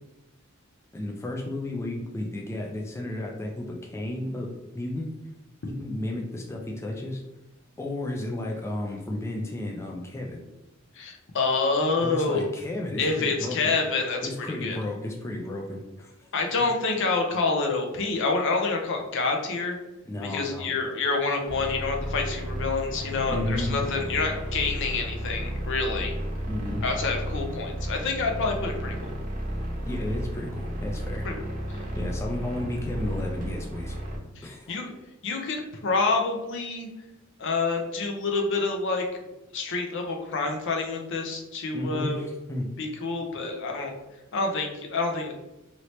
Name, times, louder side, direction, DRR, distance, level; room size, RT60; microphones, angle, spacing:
voice 1, 0.9-5.1 5.7-7.2 7.8-10.4 12.0-13.7 14.2-16.3 16.6-16.7 20.1-20.7 23.3-23.8 26.5-26.8 29.8-31.2 32.0-34.0 34.4-34.8 41.7-42.7, left 1 dB, 15° left, 0 dB, 0.3 m, -33 dB
voice 2, 10.9-12.5 13.0-14.2 14.6-14.8 16.3-19.8 20.2-26.2 26.8-29.1 31.2-31.3 31.7-31.8 34.4-34.9 35.2-36.9 37.4-39.1 39.5-42.2 42.8-44.0 44.3-45.3, left 3 dB, 60° left, 2 dB, 0.6 m, -27 dB
sound 1, 21.5-34.2, equal, 40° right, 0.8 m, -33 dB
2.9 x 2.8 x 3.0 m, 0.98 s
head